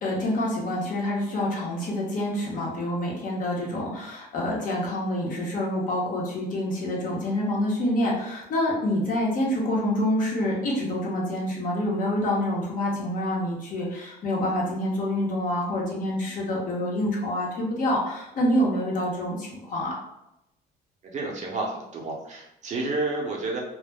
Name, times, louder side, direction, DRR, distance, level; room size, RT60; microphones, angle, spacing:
voice 1, 0.0-20.0, left 1 dB, 50° left, -3 dB, 0.9 m, -27 dB
voice 2, 21.0-23.6, right 3 dB, 45° right, -1 dB, 0.7 m, -30 dB
2.2 x 2.0 x 3.4 m, 0.86 s
cardioid pair, 110°, 17 cm